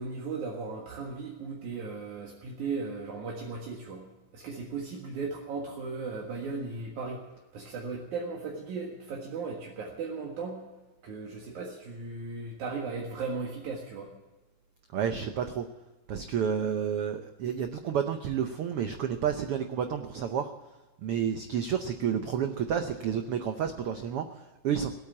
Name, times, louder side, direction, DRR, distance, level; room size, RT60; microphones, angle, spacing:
voice 1, 0.0-4.0 4.3-7.2 7.5-10.6 11.0-14.1, right 4 dB, 70° right, -2 dB, 3.1 m, -36 dB
voice 2, 14.9-15.7 16.1-20.5 21.0-24.9, right 8 dB, 90° right, 7 dB, 1.2 m, -30 dB
18.0 x 9.0 x 8.5 m, 1.1 s
omnidirectional pair, 3.6 m